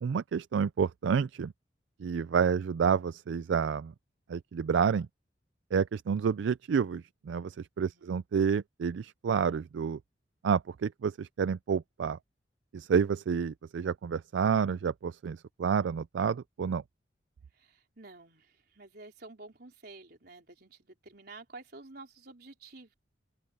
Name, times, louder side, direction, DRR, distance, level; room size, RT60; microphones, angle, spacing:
voice 1, 0.0-1.5 2.0-3.9 4.3-5.1 5.7-10.0 10.4-12.2 12.7-16.8, right 6 dB, 80° right, 0.4 m, -29 dB
voice 2, 17.5-22.9, right 3 dB, 60° right, 3.8 m, -50 dB
open air
head